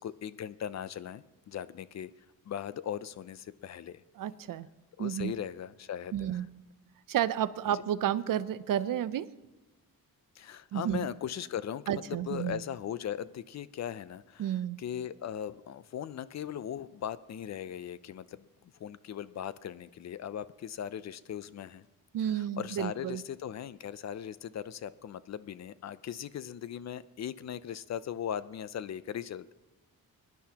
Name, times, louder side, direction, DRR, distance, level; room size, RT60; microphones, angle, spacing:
voice 1, 0.0-2.1 2.5-4.0 5.0-6.4 10.4-18.5 18.8-21.9 22.2-29.5, left 9 dB, 50° left, 16 dB, 0.4 m, -39 dB
voice 2, 4.2-4.7 5.0-5.3 6.1-6.5 7.1-9.3 10.7-11.0 11.9-12.6 14.4-14.8 22.1-23.2, right 10 dB, 65° right, 15 dB, 0.6 m, -31 dB
22.5 x 10.5 x 2.9 m, 1.1 s
wide cardioid pair, 130°, 35 cm